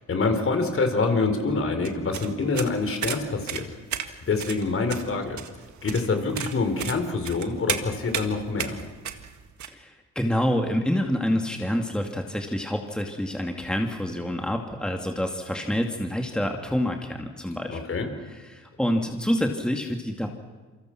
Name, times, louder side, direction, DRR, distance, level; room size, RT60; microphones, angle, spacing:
voice 1, 0.0-3.7 4.2-5.4 5.8-8.8 17.7-18.1, left 3 dB, 45° left, 6 dB, 4.3 m, -26 dB
sound 1, 1.8-9.7, right 9 dB, 70° right, 1.9 m, -34 dB
voice 2, 9.7-17.8 18.5-20.3, equal, 5° left, 3 dB, 2.4 m, -27 dB
28.0 x 24.0 x 6.1 m, 1.4 s
cardioid pair, 90°, 30 cm